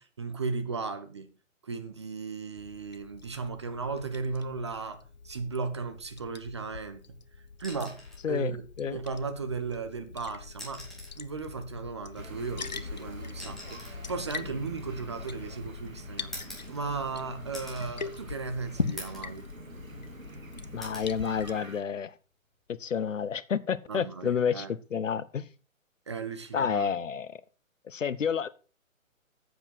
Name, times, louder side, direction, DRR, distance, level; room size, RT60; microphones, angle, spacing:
voice 1, 0.0-1.3 1.6-7.2 7.6-8.0 8.3-10.8 11.2-19.5 23.9-24.7 26.1-26.9, right 4 dB, 20° right, 0.5 m, -36 dB
Liquid, 2.6-21.5, left 5 dB, 35° left, 0.4 m, -41 dB
sound 1, 7.6-8.3 9.7-9.8 10.5-11.3 12.4-15.5 16.3-17.2 17.5-17.9 18.4-18.5 19.0-19.4 19.8-20.4 20.8-21.1 22.6-22.8, left 1 dB, ahead, 2.4 m, -46 dB
voice 2, 8.2-9.0 20.7-22.1 22.8-25.5 26.5-27.4 27.8-28.5, left 7 dB, 65° left, 0.8 m, -30 dB
sound 2, 12.1-21.8, right 3 dB, 75° right, 2.3 m, -49 dB
9.7 x 8.0 x 4.4 m
figure-of-eight pair, 135°, 41 cm